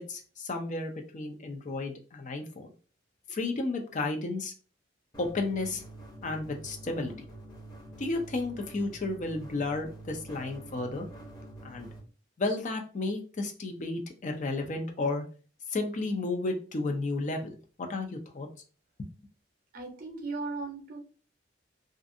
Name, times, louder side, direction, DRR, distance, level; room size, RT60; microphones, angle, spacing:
voice 1, 0.0-2.7 3.3-4.5 5.2-5.8 6.2-7.1 8.0-11.1 11.6-11.9 12.4-15.2 15.7-17.5 17.8-18.5 19.0-19.1, left 2 dB, 40° left, 4 dB, 0.4 m, -32 dB
sound 1, 5.1-12.0, right 1 dB, 20° left, 0.8 m, -47 dB
voice 2, 19.7-21.0, right 3 dB, 50° right, 3 dB, 0.6 m, -37 dB
2.5 x 2.5 x 2.5 m, 0.38 s
head